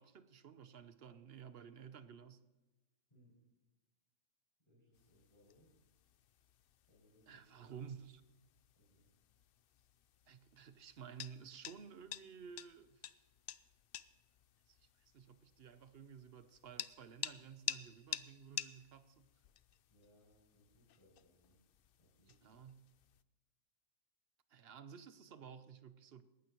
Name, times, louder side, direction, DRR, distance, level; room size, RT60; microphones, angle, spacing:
voice 1, 0.0-2.4 7.3-8.2 10.3-13.0 14.7-19.3 22.4-22.9 24.5-26.2, right 7 dB, 50° right, 0.8 m, -54 dB
voice 2, 4.6-5.7 6.8-7.8 8.7-9.1 19.9-21.6 22.0-22.6, left 1 dB, 20° left, 6.7 m, -70 dB
sound 1, 4.9-23.2, left 10 dB, 75° left, 0.5 m, -51 dB
20.0 x 15.5 x 3.0 m
omnidirectional pair, 1.5 m